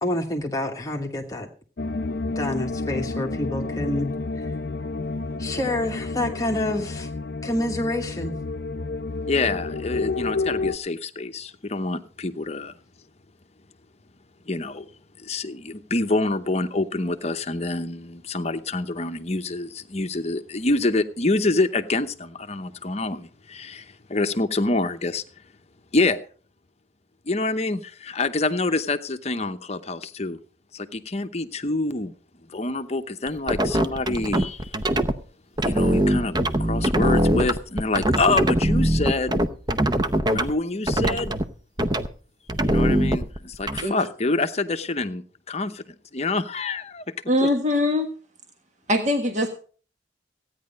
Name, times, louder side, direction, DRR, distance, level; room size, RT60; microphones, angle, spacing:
voice 1, 0.0-1.5 2.3-4.5 5.4-7.1 7.4-8.4, left 1 dB, 20° left, 1.2 m, -28 dB
sound 1, 1.8-10.8, left 3 dB, 60° left, 0.6 m, -30 dB
voice 2, 9.3-12.7 14.5-14.9 15.2-25.2 25.9-26.2 27.3-30.4 30.7-32.1 32.5-34.8 35.6-39.4 40.3-41.4 42.7-47.0 47.4-47.5, left 2 dB, 35° left, 0.8 m, -26 dB
sound 2, 33.5-35.1 35.6-40.5 40.9-41.4 41.8-42.1 42.5-43.8, right 1 dB, 25° right, 0.7 m, -22 dB
voice 3, 47.3-48.1 48.9-49.5, left 1 dB, 40° right, 1.5 m, -21 dB
16.0 x 9.6 x 5.2 m
head